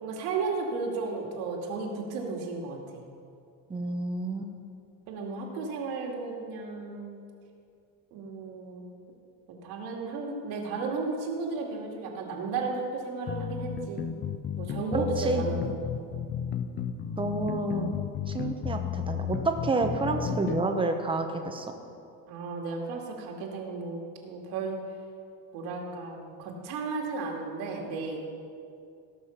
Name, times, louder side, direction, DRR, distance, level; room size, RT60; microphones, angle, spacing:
voice 1, 0.0-3.0 5.1-7.2 8.1-8.9 9.6-14.0 14.6-15.8 22.3-24.8 25.5-28.3, right 4 dB, 75° right, 0 dB, 2.4 m, -34 dB
voice 2, 3.7-4.5 14.9-15.4 17.2-17.9 18.3-21.7, right 2 dB, 15° right, 5 dB, 0.9 m, -29 dB
sound 1, 13.3-20.7, left 8 dB, 30° left, 0.4 m, -33 dB
17.5 x 6.5 x 5.7 m, 2.5 s
cardioid pair, 155°, 38 cm